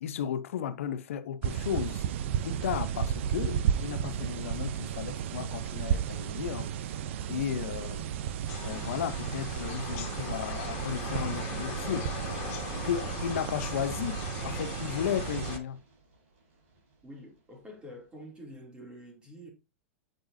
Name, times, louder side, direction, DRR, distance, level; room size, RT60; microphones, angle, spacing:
voice 1, 0.0-2.1 2.4-6.7 7.3-8.1 8.6-12.1 12.8-15.8, left 9 dB, 85° left, 0.6 m, -34 dB
sound 1, 1.4-15.6, right 9 dB, 65° right, 0.5 m, -33 dB
sound 2, 8.5-15.6, left 7 dB, 45° left, 2.0 m, -40 dB
Run, 10.5-18.2, right 2 dB, 85° right, 3.6 m, -55 dB
voice 2, 17.0-19.5, equal, 15° right, 2.4 m, -47 dB
7.7 x 4.8 x 2.6 m
supercardioid pair, 140°, 7 cm